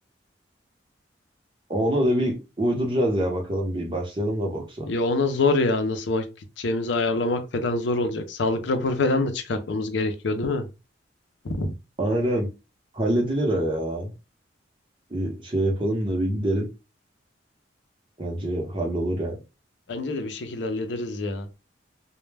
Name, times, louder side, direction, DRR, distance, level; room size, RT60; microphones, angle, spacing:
voice 1, 1.7-4.9 12.0-12.5 12.9-14.1 15.1-16.7 18.2-19.4, right 1 dB, 25° right, 0.7 m, -25 dB
voice 2, 4.9-6.3 6.6-10.7 11.4-11.7 19.9-21.5, left 2 dB, 70° left, 0.5 m, -25 dB
2.1 x 2.1 x 3.2 m
head